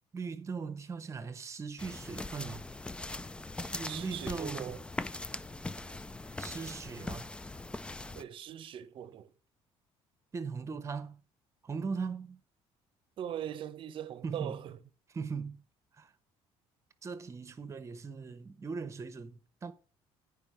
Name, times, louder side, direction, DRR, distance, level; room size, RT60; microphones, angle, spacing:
voice 1, 0.1-2.6 3.7-4.7 6.4-7.3 10.3-11.2 11.6-12.4 14.2-14.6 15.1-15.6 15.9-16.1 17.0-19.7, right 5 dB, 25° right, 0.9 m, -39 dB
sound 1, 1.8-8.2, left 2 dB, 10° left, 0.3 m, -41 dB
voice 2, 3.6-4.8 8.2-9.3 13.2-14.8, right 10 dB, 50° right, 0.8 m, -41 dB
9.7 x 5.0 x 4.8 m
cardioid pair, 130°, 11 cm